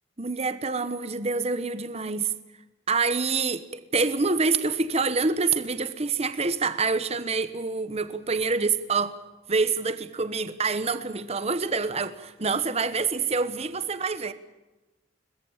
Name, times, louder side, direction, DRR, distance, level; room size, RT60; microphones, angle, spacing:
voice 1, 0.2-2.3 2.9-9.2 9.5-14.3, right 4 dB, 35° right, 1.1 m, -26 dB
22.5 x 20.5 x 8.8 m
head